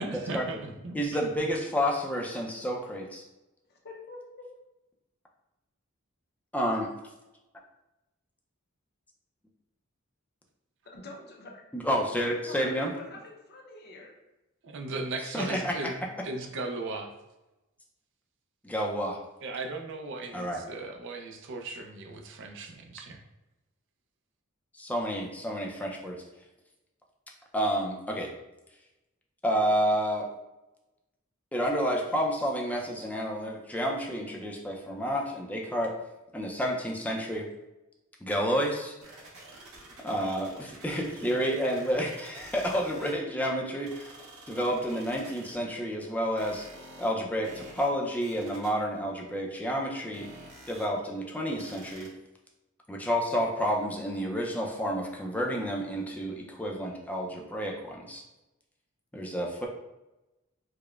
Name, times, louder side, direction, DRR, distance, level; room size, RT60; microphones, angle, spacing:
voice 1, 0.0-1.5 14.6-16.0 16.2-17.1 19.4-23.2, right 2 dB, 60° right, 3 dB, 0.4 m, -37 dB
voice 2, 0.9-3.2 6.5-6.9 11.7-12.9 15.3-15.9 18.6-19.2 20.3-20.6 24.7-26.2 27.5-28.3 29.4-30.3 31.5-35.9 36.3-37.5 38.2-38.9 40.0-46.7 47.0-50.3 50.7-52.1 52.9-58.2 59.1-59.7, equal, 5° left, 0 dB, 0.4 m, -30 dB
voice 3, 3.7-4.4 10.8-11.6 11.9-14.1, left 2 dB, 50° left, 0 dB, 0.6 m, -46 dB
sound 1, 39.0-43.2 43.8-45.6 46.0-47.1 47.4-47.9 48.2-48.9 49.3-49.4 49.8-50.9 51.6-52.1, right 2 dB, 80° right, 0.8 m, -49 dB
4.8 x 2.1 x 2.3 m, 0.99 s
head